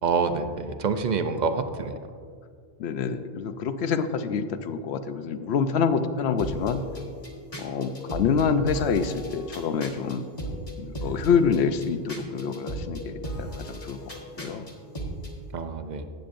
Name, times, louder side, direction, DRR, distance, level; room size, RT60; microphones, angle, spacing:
voice 1, 0.0-2.0 15.5-16.0, right 5 dB, 55° right, 8 dB, 0.6 m, -27 dB
voice 2, 2.8-6.8 7.6-10.2 10.8-14.0 14.4-14.7, left 6 dB, 85° left, 10 dB, 0.9 m, -26 dB
sound 1, 6.4-15.3, equal, 35° left, 1.4 m, -36 dB
14.5 x 8.5 x 2.6 m, 2.1 s
omnidirectional pair, 1.1 m